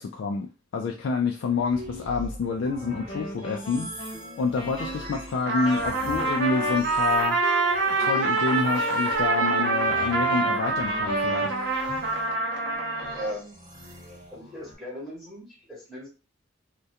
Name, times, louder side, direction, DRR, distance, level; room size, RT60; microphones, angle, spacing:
voice 1, 0.0-7.4 8.0-11.5, left 4 dB, 70° left, 2 dB, 0.3 m, -28 dB
sound 1, 1.4-14.8, equal, 25° right, 0.9 m, -43 dB
Wind instrument woodwind instrument, 3.0-11.7, right 1 dB, 30° left, 0.6 m, -39 dB
Trumpet, 5.5-13.3, right 3 dB, 60° right, 0.6 m, -25 dB
voice 2, 13.1-13.9 14.3-16.1, equal, ahead, -8 dB, 1.0 m, -38 dB
2.3 x 2.2 x 2.7 m, 0.34 s
head